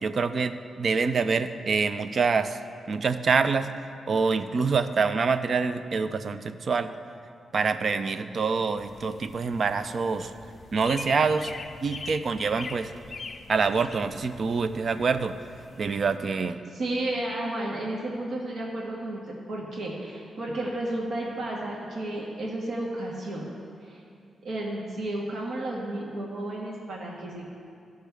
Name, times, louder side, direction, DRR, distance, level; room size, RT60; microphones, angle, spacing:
voice 1, 0.0-2.6 2.9-3.7 4.1-6.9 7.5-10.3 10.7-11.5 11.8-12.9 13.5-15.3 15.8-16.6, right 5 dB, 45° right, 11 dB, 0.4 m, -26 dB
sound 1, 8.8-16.2, left 4 dB, 40° left, 0.6 m, -43 dB
voice 2, 16.7-19.2 19.5-23.4 23.8-24.0 24.4-27.5, right 1 dB, 65° right, -4 dB, 1.5 m, -32 dB
14.5 x 6.5 x 3.4 m, 2.4 s
wide cardioid pair, 130°, 0 cm